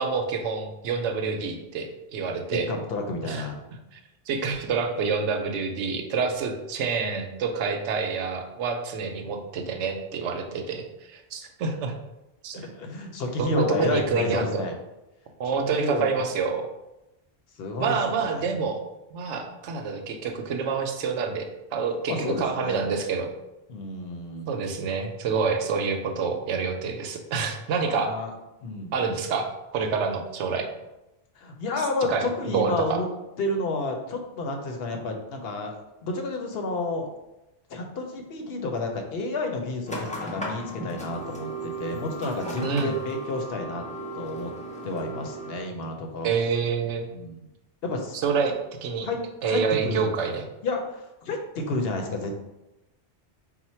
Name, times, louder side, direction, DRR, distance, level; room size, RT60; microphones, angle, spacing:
voice 1, 0.0-2.7 3.3-3.5 4.3-12.0 12.4-12.7 13.4-14.6 15.4-16.7 17.8-18.8 19.1-23.3 24.5-28.1 28.9-30.7 32.1-33.0 42.6-42.9 46.2-47.1 48.1-48.5 48.8-49.1 49.4-50.4, right 5 dB, 90° right, 5 dB, 0.9 m, -27 dB
voice 2, 2.5-3.6 12.5-14.8 15.5-16.2 17.6-18.5 22.1-22.8 23.7-24.5 27.8-28.3 28.6-28.9 31.4-33.0 33.4-35.7 36.0-37.1 37.7-43.8 44.1-44.5 44.8-46.3 47.1-47.5 47.8-48.2 49.0-49.2 49.4-50.1 50.6-52.3, left 2 dB, 65° left, 3 dB, 0.8 m, -30 dB
sound 1, 39.9-45.6, right 1 dB, 10° left, 0.4 m, -35 dB
4.2 x 2.1 x 4.3 m, 0.96 s
omnidirectional pair, 1.2 m